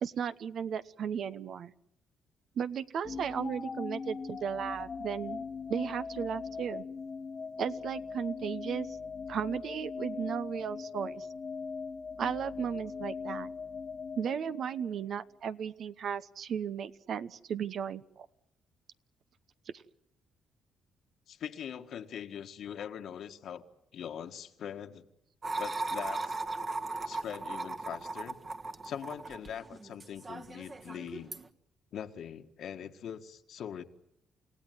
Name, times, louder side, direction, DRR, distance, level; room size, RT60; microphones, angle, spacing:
voice 1, 0.0-1.7 2.6-5.4 5.7-6.8 7.6-8.9 9.3-11.3 12.2-13.5 14.2-18.3, right 8 dB, 65° right, 13 dB, 1.1 m, -35 dB
sound 1, 3.0-15.1, left 5 dB, 40° left, 1.2 m, -40 dB
voice 2, 21.3-23.6 23.9-25.1 25.6-26.4 27.0-28.4 28.8-31.3 31.9-33.8, left 9 dB, 70° left, 7 dB, 1.7 m, -42 dB
sound 2, 25.4-31.5, right 3 dB, 35° right, 1.6 m, -38 dB
29.5 x 17.0 x 9.4 m, 0.85 s
cardioid pair, 90°, 0 cm